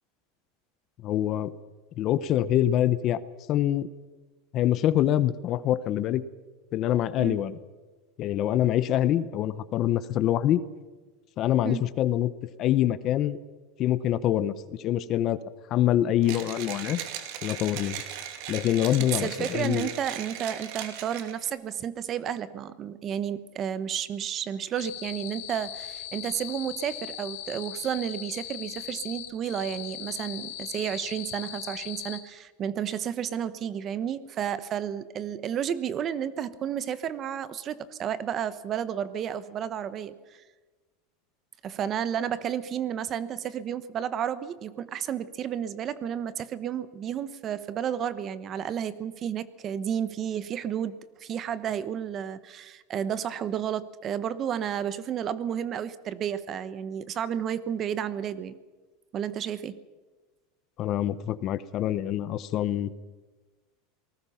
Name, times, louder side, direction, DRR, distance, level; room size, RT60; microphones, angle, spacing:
voice 1, 1.0-1.5 2.0-3.2 3.5-3.9 4.5-6.2 6.7-7.6 8.2-10.6 11.4-12.3 12.6-13.4 13.8-15.4 15.7-17.0 17.4-18.0 18.5-19.9 60.8-62.9, left 12 dB, 35° left, 16 dB, 0.8 m, -25 dB
Mechanisms, 16.2-21.5, right 10 dB, 55° right, 2.6 m, -38 dB
voice 2, 19.1-40.1 41.6-58.5 59.1-59.8, right 9 dB, 30° right, 15 dB, 1.0 m, -32 dB
sound 1, 24.8-32.2, left 12 dB, 75° left, 3.1 m, -39 dB
28.0 x 19.0 x 5.8 m, 1.3 s
supercardioid pair, 150°, 0 cm